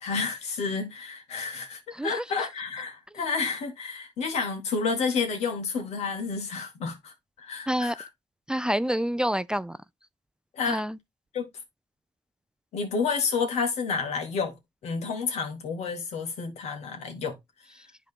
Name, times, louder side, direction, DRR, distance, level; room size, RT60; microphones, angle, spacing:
voice 1, 0.0-8.1 10.5-10.8 11.3-11.5 12.7-14.6 14.8-17.4, left 5 dB, 80° left, 2.1 m, -30 dB
voice 2, 1.9-2.2 7.7-8.0 8.5-9.8 10.7-11.0, equal, 5° right, 0.4 m, -27 dB
10.5 x 3.8 x 3.5 m
cardioid pair, 65°, 11 cm